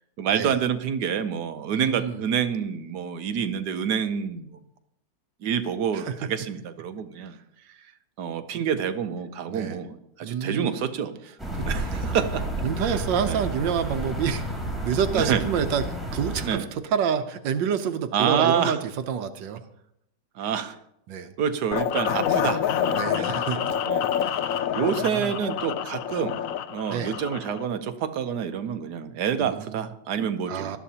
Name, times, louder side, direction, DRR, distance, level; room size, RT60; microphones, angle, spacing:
voice 1, 0.2-4.6 5.4-7.4 8.2-11.2 11.6-12.5 12.8-13.0 13.2-13.4 15.1-15.4 16.4-16.7 18.1-18.8 20.4-20.8 21.4-24.1 24.7-26.4 26.7-30.7, right 8 dB, 70° right, 10 dB, 1.3 m, -27 dB
voice 2, 1.7-2.2 5.9-6.2 9.5-9.8 10.2-10.7 11.6-11.7 12.6-14.5 14.8-15.8 16.1-19.6 21.1-21.3 22.9-23.8 24.2-24.6 25.1-25.3 26.9-27.2 29.4-29.8 30.5-30.8, right 7 dB, 85° right, 9 dB, 1.5 m, -28 dB
sound 1, 11.4-16.5, right 1 dB, ahead, 3.5 m, -31 dB
sound 2, 21.7-27.7, left 9 dB, 70° left, 0.8 m, -27 dB
18.5 x 12.5 x 2.8 m, 0.77 s
omnidirectional pair, 1.9 m